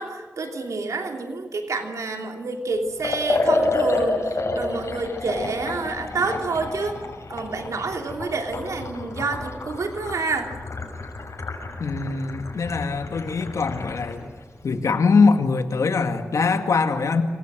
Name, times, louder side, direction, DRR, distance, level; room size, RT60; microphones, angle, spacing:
voice 1, 0.0-4.2 4.6-7.0 7.3-10.5, right 3 dB, 85° right, 4 dB, 3.0 m, -28 dB
Liquid, 3.0-14.2, left 2 dB, 65° left, 6.5 m, -29 dB
voice 2, 11.8-14.3 14.6-17.2, left 4 dB, 90° left, 7 dB, 2.2 m, -22 dB
27.0 x 25.5 x 6.3 m, 1.4 s
cardioid pair, 65°, 5 cm